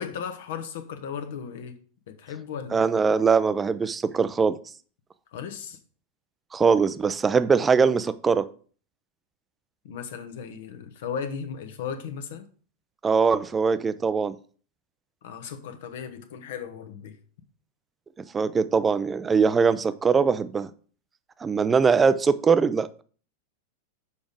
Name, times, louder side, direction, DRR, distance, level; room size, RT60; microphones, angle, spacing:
voice 1, 0.0-1.8 2.2-2.9 5.3-5.8 9.8-12.4 15.2-17.2, left 7 dB, 55° left, 9 dB, 1.1 m, -36 dB
voice 2, 2.7-4.6 6.5-8.5 13.0-14.3 18.3-20.7 21.4-22.9, right 5 dB, 15° right, 15 dB, 0.5 m, -21 dB
6.9 x 5.1 x 4.9 m, 0.43 s
figure-of-eight pair, 90°, 0 cm